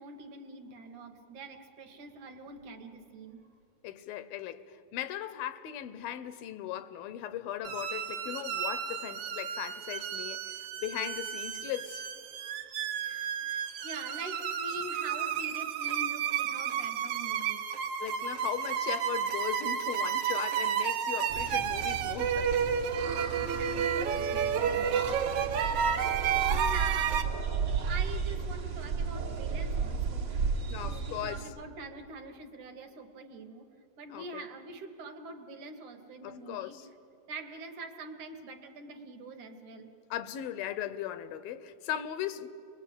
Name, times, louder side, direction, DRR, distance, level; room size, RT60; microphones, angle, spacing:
voice 1, 0.0-3.5 12.4-17.6 23.4-25.2 25.6-26.1 26.5-30.4 30.9-33.7 34.0-36.8 37.3-39.9, right 3 dB, 65° right, 2.3 m, -45 dB
voice 2, 3.8-12.1 18.0-22.5 25.6-25.7 30.7-31.5 34.1-34.5 36.2-36.9 40.1-42.5, left 11 dB, 80° left, 2.6 m, -38 dB
sound 1, 7.6-27.2, right 8 dB, 80° right, 1.3 m, -31 dB
sound 2, 21.3-31.4, right 5 dB, 45° right, 1.6 m, -34 dB
28.5 x 21.0 x 8.6 m
omnidirectional pair, 4.2 m